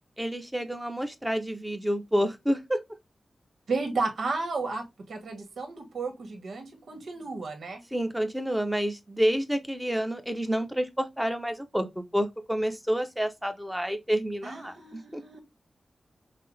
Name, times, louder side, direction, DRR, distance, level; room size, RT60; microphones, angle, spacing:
voice 1, 0.2-2.8 7.9-15.2, equal, 5° right, 0.7 m, -29 dB
voice 2, 3.7-7.8 14.4-15.4, right 3 dB, 85° right, 1.2 m, -33 dB
5.7 x 2.1 x 3.2 m
wide cardioid pair, 130°, 0 cm